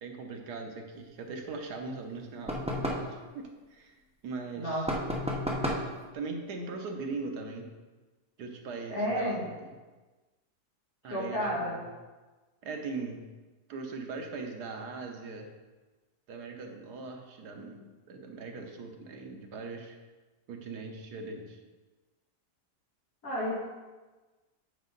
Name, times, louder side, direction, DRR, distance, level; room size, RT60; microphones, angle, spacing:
voice 1, 0.0-4.9 5.6-7.7 8.4-9.7 11.0-11.9 12.6-13.2 13.7-15.5 16.3-20.0 20.5-21.6, right 3 dB, 85° right, 3 dB, 1.5 m, -40 dB
sound 1, 2.5-3.1 4.9-5.9, equal, 5° right, 0.7 m, -31 dB
voice 2, 4.5-5.0 8.9-9.4 11.1-11.7 23.2-23.6, equal, 65° left, -7 dB, 3.2 m, -31 dB
8.6 x 5.2 x 3.9 m, 1.2 s
omnidirectional pair, 1.7 m